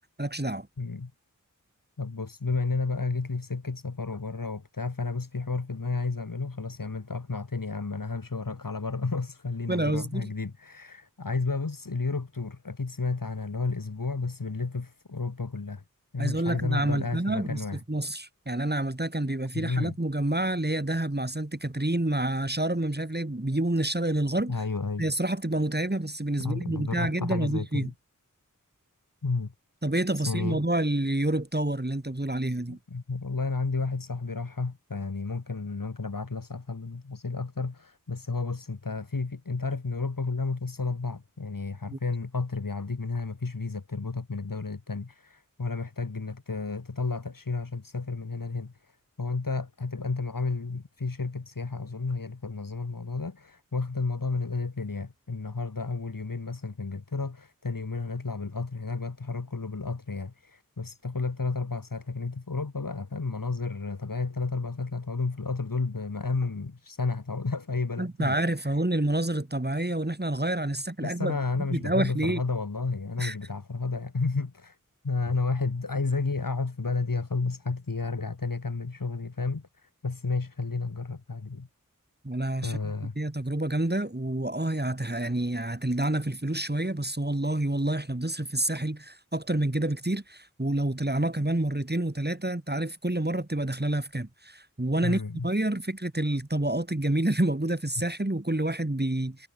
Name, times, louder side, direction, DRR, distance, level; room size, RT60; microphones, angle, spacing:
voice 1, 0.2-0.7 9.7-10.3 16.2-24.6 25.0-27.9 29.8-32.8 41.9-42.0 68.0-72.4 73.2-73.4 82.2-99.5, right 1 dB, 30° right, 4.1 m, -28 dB
voice 2, 0.8-1.1 2.0-15.8 16.1-17.8 19.5-20.0 24.5-25.0 26.4-27.9 29.2-29.5 30.1-30.6 32.7-68.7 71.0-74.8 75.0-81.7 82.6-83.2 95.0-95.5, left 4 dB, 75° left, 2.1 m, -32 dB
wide cardioid pair, 45°, 33 cm